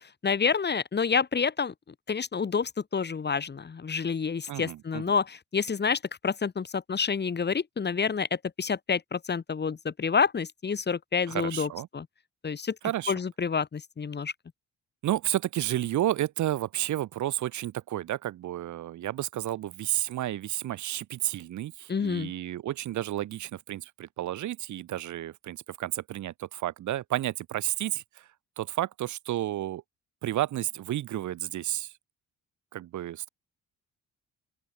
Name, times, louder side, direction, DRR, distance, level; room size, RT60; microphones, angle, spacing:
voice 1, 0.0-1.7 2.1-12.1 12.4-12.8 13.1-14.3 21.9-22.3, left 5 dB, 35° left, 2.0 m, -28 dB
voice 2, 4.5-5.0 11.3-11.9 12.8-13.1 15.0-28.0 28.6-29.8 30.2-31.9 32.7-33.3, right 13 dB, 70° right, 1.4 m, -31 dB
open air
cardioid pair, 90°, 30 cm